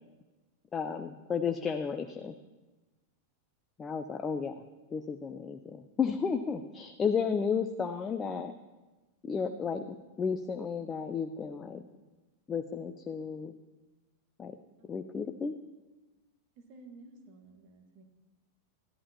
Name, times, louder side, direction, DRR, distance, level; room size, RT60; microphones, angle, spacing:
voice 1, 0.7-2.4 3.8-4.6 4.9-8.5 9.2-9.8 10.2-11.8 12.5-13.5 14.4-14.6 14.9-15.5, left 6 dB, 20° left, 8 dB, 0.5 m, -33 dB
voice 2, 9.5-9.9 16.6-18.0, right 3 dB, 40° right, 4 dB, 1.5 m, -53 dB
14.0 x 11.0 x 2.9 m, 1.2 s
figure-of-eight pair, 90°, 0 cm